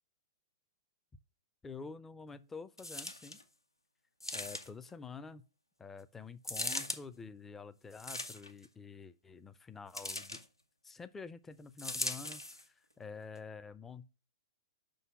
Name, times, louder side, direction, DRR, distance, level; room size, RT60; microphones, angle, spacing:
voice 1, 1.6-3.4 4.3-5.4 5.8-10.4 10.8-14.1, left 5 dB, 10° left, 0.4 m, -48 dB
sound 1, 2.8-3.4 4.2-4.9 6.4-7.0 7.9-8.6 9.9-10.4 11.8-12.6 13.3-13.4, left 1 dB, 90° left, 0.7 m, -39 dB
5.5 x 3.9 x 5.8 m
figure-of-eight pair, 105°, 2 cm